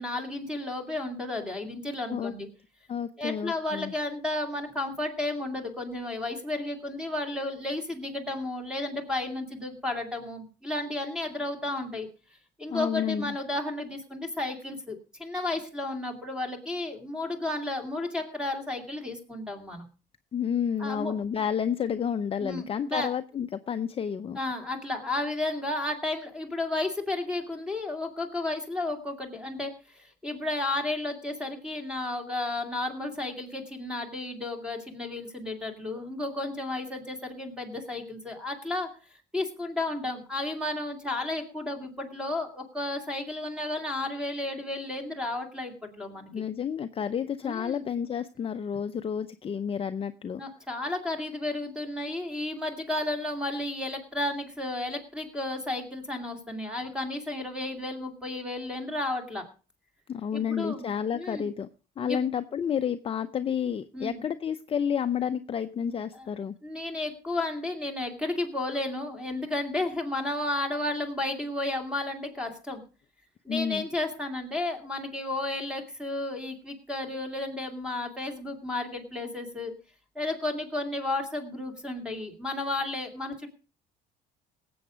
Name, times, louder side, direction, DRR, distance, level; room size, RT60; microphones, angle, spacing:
voice 1, 0.0-2.5 3.2-12.1 12.6-19.8 20.8-21.1 22.4-23.1 24.4-38.9 39.3-46.3 47.4-47.8 50.4-59.4 60.3-61.5 62.0-62.2 63.9-64.2 66.1-66.3 66.6-72.8 73.4-79.7 80.1-83.5, left 2 dB, 5° right, 5 dB, 2.6 m, -33 dB
voice 2, 2.9-3.9 12.7-13.4 20.3-24.4 46.3-50.4 60.1-61.7 62.0-66.6 73.5-73.9, left 8 dB, 35° left, 8 dB, 0.6 m, -30 dB
18.0 x 7.8 x 5.1 m, 0.36 s
cardioid pair, 110°, 17 cm